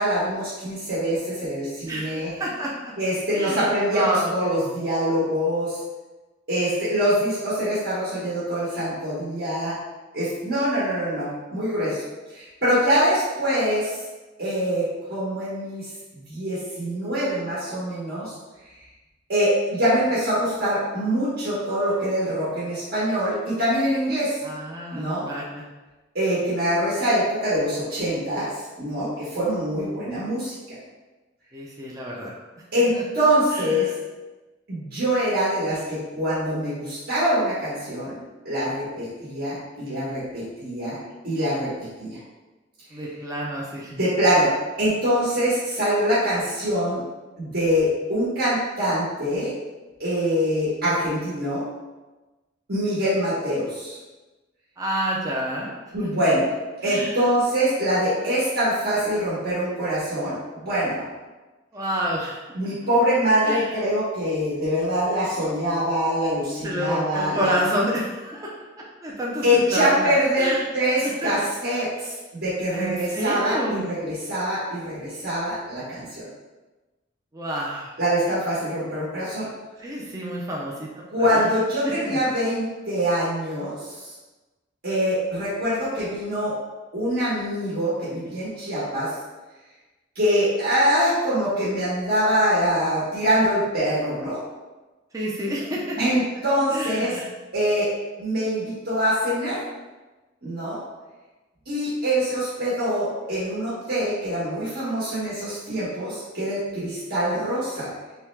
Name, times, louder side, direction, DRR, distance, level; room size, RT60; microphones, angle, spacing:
voice 1, 0.0-2.3 3.0-5.8 6.5-9.7 10.1-12.0 12.3-14.0 14.4-15.9 16.3-18.3 19.3-24.3 24.9-25.3 26.1-28.5 28.8-30.5 32.7-33.9 34.7-38.1 38.4-41.0 41.2-42.2 43.9-44.5 44.8-47.0 47.4-49.5 50.0-51.6 52.7-54.0 55.9-56.4 56.8-61.0 62.5-67.5 69.4-76.3 78.0-79.5 81.1-84.1 84.8-86.5 86.9-89.1 90.1-94.4 96.0-97.1 97.5-97.9 98.2-99.6 100.4-100.8 101.7-107.9, equal, 55° right, -9 dB, 1.2 m, -24 dB
voice 2, 1.9-2.7 3.3-4.3 24.4-25.7 31.5-32.3 32.9-33.0 33.5-33.9 42.9-43.9 54.8-55.7 56.0-56.4 56.8-57.2 61.7-62.4 63.4-63.7 66.6-68.5 69.0-70.6 71.2-71.3 72.7-73.9 77.3-77.9 79.8-81.4 82.0-82.2 95.1-96.2 96.7-97.3, equal, 20° right, -4 dB, 0.4 m, -29 dB
3.4 x 3.2 x 3.2 m, 1.2 s
head